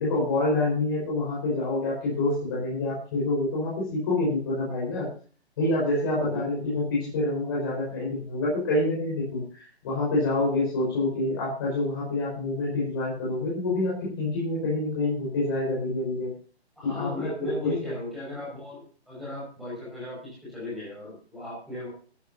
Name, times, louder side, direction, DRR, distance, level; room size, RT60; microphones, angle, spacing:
voice 1, 0.0-5.1 5.6-16.3 16.8-17.9, left 2 dB, 20° left, -6 dB, 5.2 m, -27 dB
voice 2, 6.2-6.8 16.8-21.9, left 2 dB, ahead, -9 dB, 5.5 m, -37 dB
14.5 x 13.5 x 2.7 m, 0.40 s
hypercardioid pair, 175°, 33 cm